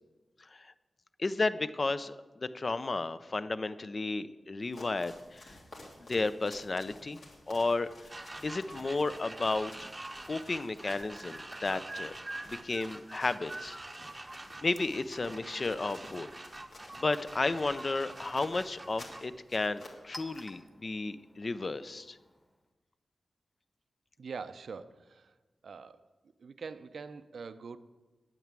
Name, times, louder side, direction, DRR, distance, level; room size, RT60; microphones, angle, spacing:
voice 1, 1.2-5.6 6.0-7.9 8.4-9.7 10.3-12.1 12.5-13.8 14.6-16.3 17.0-22.2, left 3 dB, 40° left, 13 dB, 0.5 m, -33 dB
sound 1, 4.6-20.6, left 2 dB, 70° left, 2.6 m, -54 dB
sound 2, 8.1-19.2, right 2 dB, 25° right, 0.8 m, -45 dB
Chink clink, 17.2-22.7, left 1 dB, 15° left, 1.3 m, -55 dB
voice 2, 24.2-25.4 25.6-26.1 26.4-27.8, right 5 dB, 80° right, 12 dB, 0.5 m, -44 dB
9.5 x 9.0 x 7.5 m, 1.2 s
wide cardioid pair, 90°, 0 cm